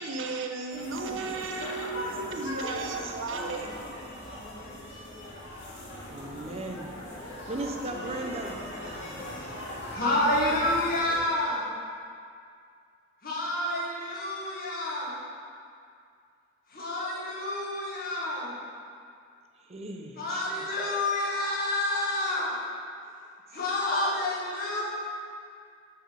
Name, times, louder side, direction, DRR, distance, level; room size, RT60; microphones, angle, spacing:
voice 1, 0.0-3.7, right 3 dB, 80° right, 3 dB, 0.7 m, -34 dB
sound 1, 0.7-11.2, left 1 dB, 90° left, 1.7 m, -39 dB
voice 2, 6.1-6.9 7.5-8.6 19.7-20.7, right 2 dB, 35° right, 3 dB, 0.6 m, -36 dB
voice 3, 9.9-11.6 13.2-15.1 16.7-18.5 20.2-22.5 23.5-24.8, left 1 dB, 50° left, -6 dB, 1.6 m, -28 dB
8.9 x 3.5 x 5.1 m, 2.3 s
head